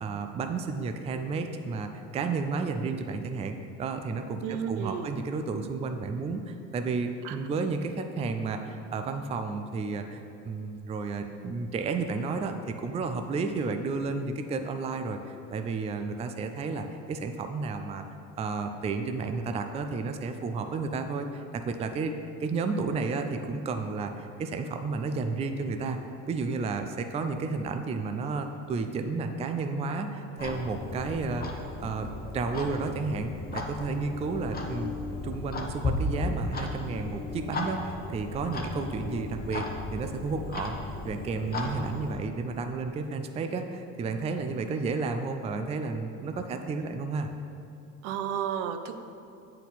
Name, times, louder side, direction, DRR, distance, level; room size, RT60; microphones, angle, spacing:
voice 1, 0.0-18.0 18.4-22.1 22.4-26.0 26.3-34.9 35.2-39.7 39.9-40.7 41.1-47.3, right 4 dB, 20° right, 6 dB, 0.4 m, -32 dB
voice 2, 4.4-5.1 7.2-7.4 48.0-48.9, right 8 dB, 70° right, 8 dB, 0.6 m, -32 dB
Clock, 30.4-42.1, left 2 dB, 25° left, 0.8 m, -35 dB
8.0 x 4.3 x 4.1 m, 2.7 s
supercardioid pair, 90°, 36 cm